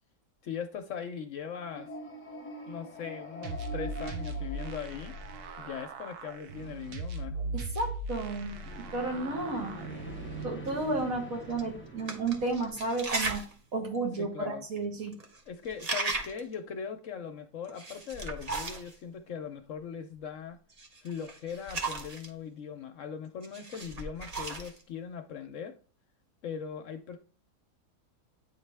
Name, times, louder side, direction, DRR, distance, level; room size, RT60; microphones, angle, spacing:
voice 1, 0.4-1.9 2.7-5.1 5.6-7.4 13.9-14.6 15.5-20.6 21.0-25.7 26.4-27.2, left 7 dB, 65° left, 0.9 m, -40 dB
sound 1, 1.5-5.9 8.5-13.4, right 1 dB, 10° left, 0.9 m, -44 dB
sound 2, 3.4-10.4, right 2 dB, 80° right, 1.2 m, -39 dB
voice 2, 7.5-9.8 10.4-13.5 13.7-15.2, right 3 dB, 65° right, 1.8 m, -32 dB
sound 3, 10.7-10.8 11.5-11.6 12.0-13.5 13.9-14.0 14.8-14.9 15.1-15.4 15.7-16.5 17.6-18.9 20.8-22.3 23.4-24.8, right 3 dB, 35° right, 0.7 m, -36 dB
9.1 x 3.2 x 3.3 m
omnidirectional pair, 1.6 m